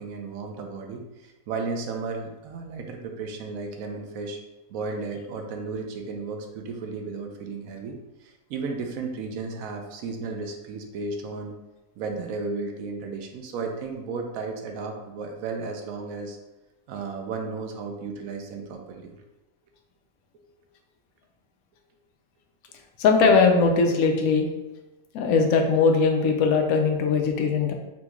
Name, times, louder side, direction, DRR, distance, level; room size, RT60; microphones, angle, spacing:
voice 1, 0.0-4.4 4.7-8.0 8.2-11.6 12.0-16.4 16.9-19.1, right 4 dB, 80° right, 3 dB, 1.0 m, -34 dB
voice 2, 23.0-24.5 25.1-27.7, left 4 dB, 90° left, 3 dB, 1.0 m, -20 dB
4.2 x 2.3 x 2.9 m, 1.0 s
omnidirectional pair, 1.4 m